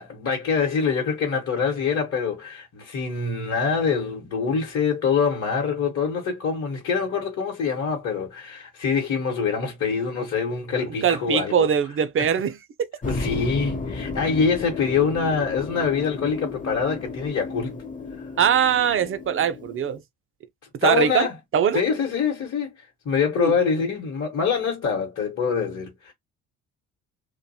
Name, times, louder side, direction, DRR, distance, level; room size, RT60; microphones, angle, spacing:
voice 1, 0.0-11.7 12.2-12.3 13.0-17.8 18.2-18.3 20.8-21.3 21.7-26.1, left 5 dB, 40° left, 1.0 m, -25 dB
voice 2, 11.0-12.9 18.4-20.0 20.8-21.3 21.5-21.8 23.4-23.5, right 8 dB, 35° right, 0.5 m, -21 dB
sound 1, 13.0-20.0, left 4 dB, 20° left, 0.7 m, -33 dB
2.6 x 2.2 x 2.6 m
hypercardioid pair, 60°, 37 cm